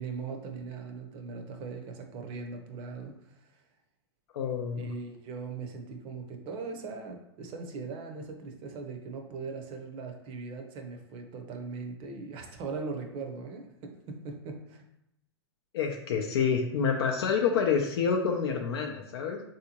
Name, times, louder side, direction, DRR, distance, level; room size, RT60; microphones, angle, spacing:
voice 1, 0.0-3.6 4.7-14.8, right 4 dB, 40° right, 4 dB, 0.7 m, -40 dB
voice 2, 4.3-4.9 15.7-19.4, left 6 dB, 65° left, 2 dB, 0.5 m, -28 dB
3.6 x 2.8 x 2.8 m, 0.81 s
hypercardioid pair, 110°, 14 cm